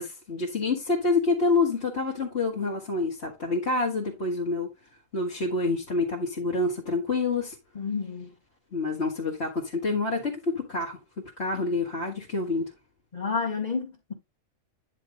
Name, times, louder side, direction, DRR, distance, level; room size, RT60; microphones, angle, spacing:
voice 1, 0.0-4.7 5.1-7.6 8.7-12.7, left 3 dB, 50° left, 2.2 m, -27 dB
voice 2, 7.8-8.3 13.1-14.1, left 5 dB, 30° left, 2.0 m, -30 dB
9.9 x 3.7 x 5.2 m
omnidirectional pair, 1.4 m